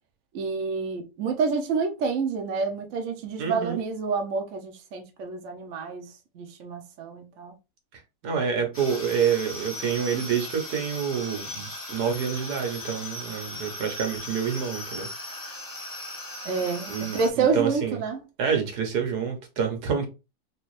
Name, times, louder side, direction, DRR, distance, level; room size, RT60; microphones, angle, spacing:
voice 1, 0.3-6.1 6.3-7.5 16.4-18.2, right 5 dB, 60° right, 1.0 m, -28 dB
voice 2, 3.4-3.8 8.2-15.1 16.9-18.0 18.4-20.1, right 7 dB, 80° right, 1.6 m, -27 dB
sound 1, 8.7-17.3, left 1 dB, 20° left, 0.6 m, -38 dB
3.3 x 3.0 x 3.1 m
omnidirectional pair, 1.7 m